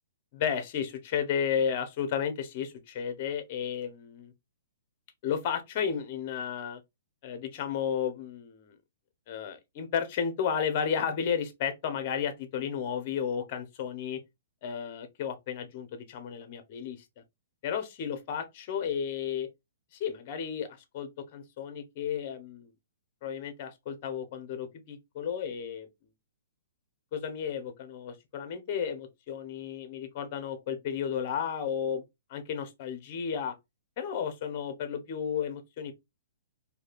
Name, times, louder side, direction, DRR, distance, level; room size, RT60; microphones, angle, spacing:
voice 1, 0.3-4.3 5.2-6.8 7.2-8.7 9.3-14.2 14.6-17.0 17.6-19.5 20.0-20.7 20.9-22.7 23.2-25.9 27.1-32.0 32.3-33.5 34.0-35.9, left 7 dB, 40° left, 1.0 m, -33 dB
4.1 x 2.8 x 2.4 m
hypercardioid pair, 150°, 0 cm